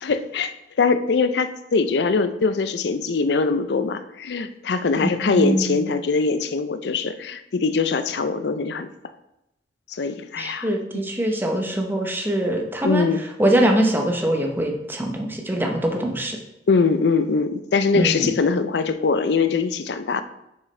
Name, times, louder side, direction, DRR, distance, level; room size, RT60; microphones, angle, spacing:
voice 1, 0.0-0.5 0.8-8.9 9.9-10.7 12.8-13.2 16.7-20.2, left 4 dB, 70° left, 11 dB, 0.5 m, -22 dB
voice 2, 5.0-5.9 10.4-13.0 13.4-16.4 17.9-18.3, right 1 dB, 10° right, 2 dB, 0.8 m, -23 dB
6.3 x 6.2 x 3.3 m, 0.86 s
head